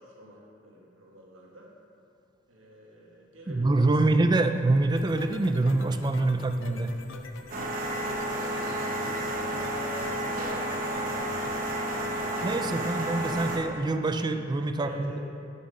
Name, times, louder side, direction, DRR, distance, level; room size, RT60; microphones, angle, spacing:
voice 1, 0.0-1.7 2.5-4.2 8.6-12.9 14.8-15.2, equal, 85° right, -3 dB, 1.6 m, -47 dB
voice 2, 3.5-6.9 12.4-15.2, right 2 dB, 20° right, 7 dB, 0.4 m, -25 dB
sound 1, 4.9-12.8, left 3 dB, 70° left, 0.6 m, -45 dB
sound 2, 7.5-13.6, right 1 dB, 45° right, 1.0 m, -31 dB
7.3 x 6.3 x 5.4 m, 2.5 s
head